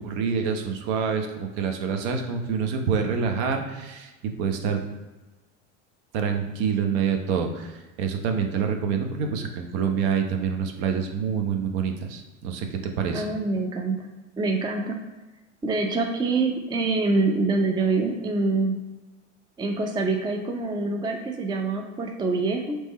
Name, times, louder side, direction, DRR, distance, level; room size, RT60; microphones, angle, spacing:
voice 1, 0.0-4.8 6.1-13.2, right 6 dB, 60° right, 4 dB, 0.8 m, -27 dB
voice 2, 13.1-14.0 14.4-15.0 15.6-18.8 19.6-22.8, right 3 dB, 10° right, 3 dB, 0.5 m, -25 dB
3.5 x 3.2 x 4.1 m, 1.1 s
hypercardioid pair, 85°, 37 cm